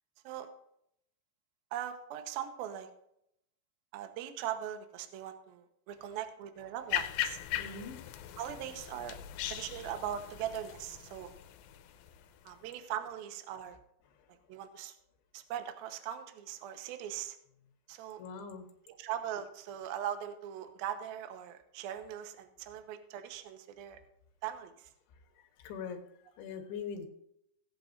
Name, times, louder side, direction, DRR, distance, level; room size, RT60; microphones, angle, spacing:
voice 1, 1.7-2.9 3.9-7.4 8.4-9.2 9.5-11.3 12.4-13.8 14.5-15.0 15.3-17.4 17.9-18.2 18.9-24.0 24.4-24.9, right 10 dB, 90° right, 7 dB, 2.1 m, -40 dB
sound 1, 6.9-12.5, left 12 dB, 85° left, 3.3 m, -39 dB
voice 2, 7.5-8.2 18.2-18.7 25.6-26.0 26.4-27.1, left 6 dB, 70° left, 4 dB, 3.7 m, -42 dB
18.0 x 9.0 x 2.6 m, 0.75 s
omnidirectional pair, 5.9 m